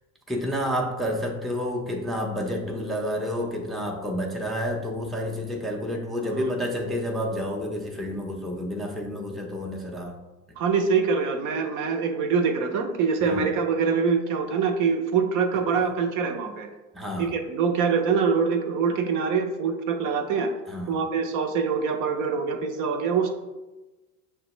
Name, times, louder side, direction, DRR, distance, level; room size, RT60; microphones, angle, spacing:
voice 1, 0.3-10.2 13.2-13.5 15.7-15.9 16.9-17.3 20.7-21.0, equal, ahead, -1 dB, 0.5 m, -30 dB
voice 2, 10.6-16.7 17.2-20.5 20.9-23.3, right 5 dB, 55° right, 5 dB, 0.6 m, -24 dB
6.6 x 2.2 x 3.0 m, 1.1 s
supercardioid pair, 95°, 38 cm